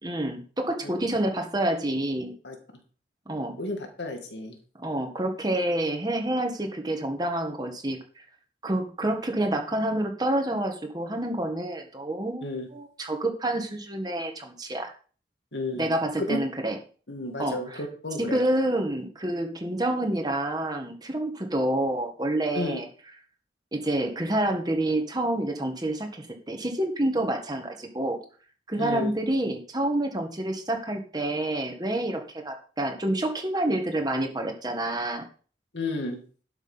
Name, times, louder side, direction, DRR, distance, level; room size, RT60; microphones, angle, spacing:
voice 1, 0.0-2.3 3.3-3.6 4.8-8.0 8.6-14.9 15.8-16.8 17.4-17.8 18.2-22.9 23.7-28.2 28.7-35.2, right 1 dB, 25° right, 4 dB, 1.6 m, -28 dB
voice 2, 3.6-4.6 12.4-12.7 15.5-15.9 16.3-16.4 17.1-18.4 22.5-22.8 28.8-29.1 35.7-36.2, left 2 dB, 85° left, 4 dB, 2.3 m, -32 dB
12.5 x 5.9 x 5.7 m, 0.41 s
head